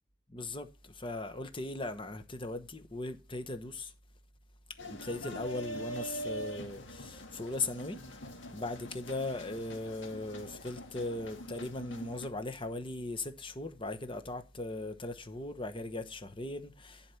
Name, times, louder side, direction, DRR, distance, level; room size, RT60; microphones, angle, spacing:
voice 1, 0.3-3.9 4.9-17.2, left 2 dB, 25° left, 1.0 m, -39 dB
sound 1, 4.8-12.3, equal, 65° left, 1.9 m, -44 dB
11.5 x 4.3 x 6.9 m
head